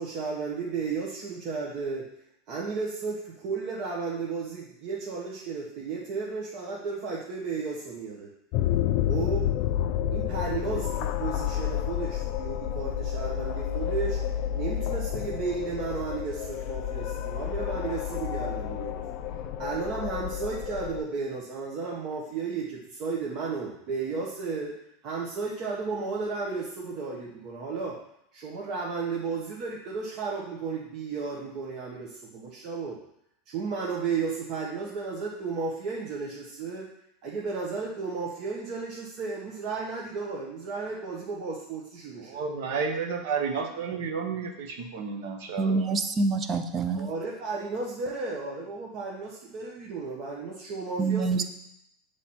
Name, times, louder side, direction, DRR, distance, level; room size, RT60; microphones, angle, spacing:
voice 1, 0.0-2.1 2.5-8.3 9.1-9.5 10.1-19.0 19.6-24.7 25.0-28.0 28.3-33.0 33.5-36.9 37.2-42.4 45.6-45.7 46.9-51.4, right 4 dB, 45° right, -4 dB, 1.0 m, -33 dB
sound 1, 8.5-21.0, left 10 dB, 55° left, 0.4 m, -30 dB
voice 2, 42.2-45.9, right 5 dB, 65° right, 4 dB, 1.1 m, -31 dB
voice 3, 45.6-47.1 51.0-51.4, right 4 dB, 25° right, 9 dB, 0.5 m, -26 dB
7.0 x 3.3 x 4.3 m, 0.78 s
supercardioid pair, 140°, 0 cm